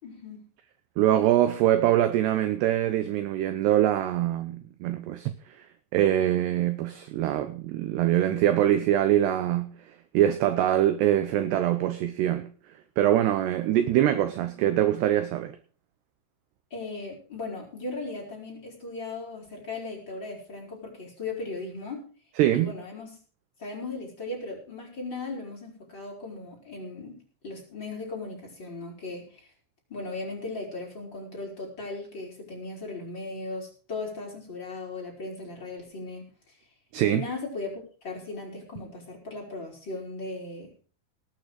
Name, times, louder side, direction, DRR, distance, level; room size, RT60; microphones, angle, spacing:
voice 1, 0.0-0.4 16.7-22.1 22.5-23.2 23.6-29.5 29.9-36.3 37.1-40.7, left 3 dB, 20° left, 5.2 m, -37 dB
voice 2, 1.0-5.7 5.9-9.7 10.1-12.5 13.0-15.6 22.4-22.7 36.9-37.2, right 12 dB, 80° right, 2.4 m, -24 dB
18.5 x 9.2 x 4.9 m
omnidirectional pair, 5.9 m